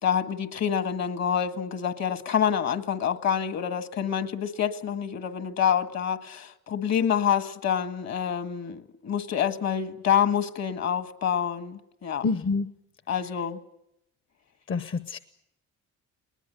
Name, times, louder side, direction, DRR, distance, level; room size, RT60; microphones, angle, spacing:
voice 1, 0.0-12.2 13.1-13.6, left 8 dB, 60° left, 10 dB, 1.7 m, -27 dB
voice 2, 12.2-12.7 14.7-15.2, left 4 dB, 45° left, 12 dB, 0.9 m, -27 dB
20.0 x 20.0 x 9.0 m, 0.83 s
cardioid pair, 90°, 30 cm